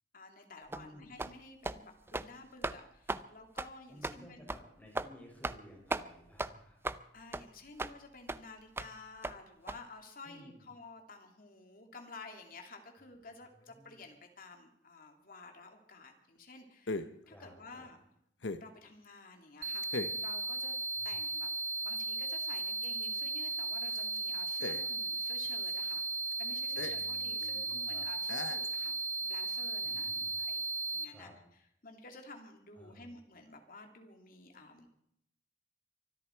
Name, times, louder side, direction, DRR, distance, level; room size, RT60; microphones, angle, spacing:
voice 1, 0.1-4.4 7.1-18.0 18.6-20.8 21.0-21.5 21.8-26.0 26.4-29.0 29.2-30.1 30.4-31.3 31.8-34.9, left 3 dB, 50° left, 4 dB, 2.7 m, -52 dB
voice 2, 0.7-1.1 3.9-6.8 10.2-10.7 13.6-14.0 17.2-17.9 20.9-21.2 26.7-28.1 29.8-30.4 31.1-31.3 32.7-33.1, equal, 10° left, -2 dB, 6.2 m, -56 dB
sound 1, 0.7-0.9 1.2-1.4 1.6-1.8 2.1-2.3 2.6-2.8 3.1-3.2 3.6-3.7 4.0-4.2 4.5-4.6 5.0-5.1 5.4-5.6 5.9-6.1 6.4-6.5 6.8-7.0 7.3-7.4 7.8-7.9 8.3-8.4 8.8-8.9 9.2-9.4 9.7-9.8, right 2 dB, 15° right, 0.5 m, -36 dB
sound 2, 16.9-17.2 18.4-18.8 19.8-20.3 22.0-23.2 23.5-23.6 23.8-25.2 25.4-25.7 26.3-26.4 26.8-27.1 27.4-27.5 28.3-28.7, left 3 dB, 85° left, 0.9 m, -40 dB
sound 3, 19.6-31.0, right 3 dB, 40° right, 0.9 m, -36 dB
24.0 x 13.0 x 4.5 m, 0.73 s
head